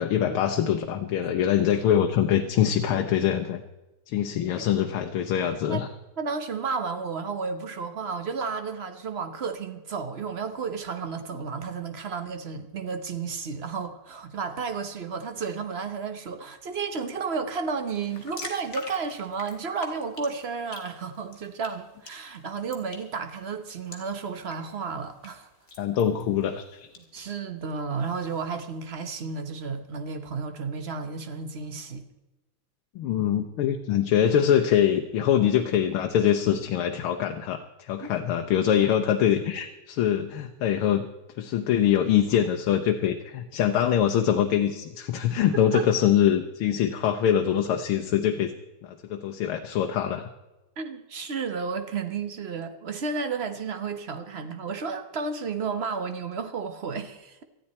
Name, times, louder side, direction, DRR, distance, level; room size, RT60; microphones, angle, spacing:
voice 1, 0.0-3.6 4.1-5.9 25.8-26.9 33.0-41.1 41.4-48.5 48.8-50.3, left 9 dB, 85° left, 1.7 m, -24 dB
voice 2, 6.2-25.5 27.1-32.0 38.0-38.1 45.7-45.8 50.8-57.4, right 5 dB, 45° right, 0.9 m, -32 dB
sound 1, 17.9-27.0, left 2 dB, 35° left, 2.3 m, -45 dB
19.5 x 13.5 x 4.2 m
omnidirectional pair, 2.3 m